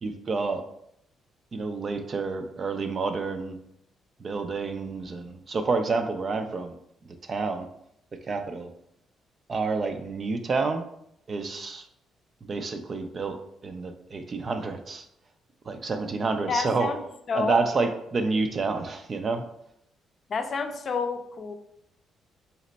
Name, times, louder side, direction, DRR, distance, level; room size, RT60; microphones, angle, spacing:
voice 1, 0.0-0.6 1.5-3.6 4.2-6.7 7.2-7.7 8.1-8.7 9.5-10.8 11.3-11.9 12.5-15.0 15.6-17.0 17.3-19.4, right 4 dB, 40° right, 7 dB, 0.5 m, -29 dB
voice 2, 16.5-17.0 17.3-17.6 20.3-21.5, left 5 dB, 50° left, 6 dB, 0.5 m, -29 dB
4.1 x 2.1 x 3.9 m, 0.74 s
cardioid pair, 90°, 0 cm